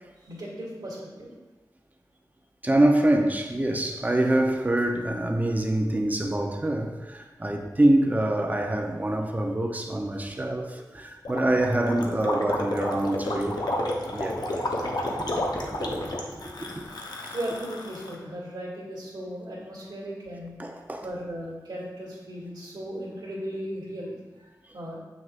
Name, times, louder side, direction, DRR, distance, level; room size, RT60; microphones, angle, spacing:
voice 1, 0.2-1.3 16.3-16.5 16.8-20.6 21.0-25.0, equal, 80° right, -8 dB, 2.0 m, -37 dB
voice 2, 2.6-13.6 14.1-14.4 15.2-16.8 17.2-17.3 20.6-21.0, right 1 dB, 20° right, 3 dB, 0.7 m, -25 dB
Gurgling, 11.2-18.1, left 1 dB, 65° left, 0.9 m, -31 dB
7.7 x 6.2 x 2.5 m, 1.2 s
wide cardioid pair, 80°, 7 cm